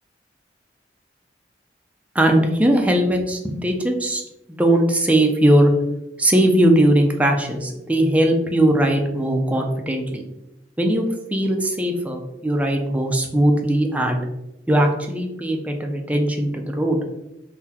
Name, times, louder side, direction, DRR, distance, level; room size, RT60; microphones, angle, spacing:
voice 1, 2.1-4.2 4.6-5.7 6.2-10.2 10.8-11.0 11.3-14.2 14.7-17.0, right 1 dB, 10° right, 2 dB, 0.4 m, -19 dB
3.7 x 2.2 x 2.8 m, 0.90 s
head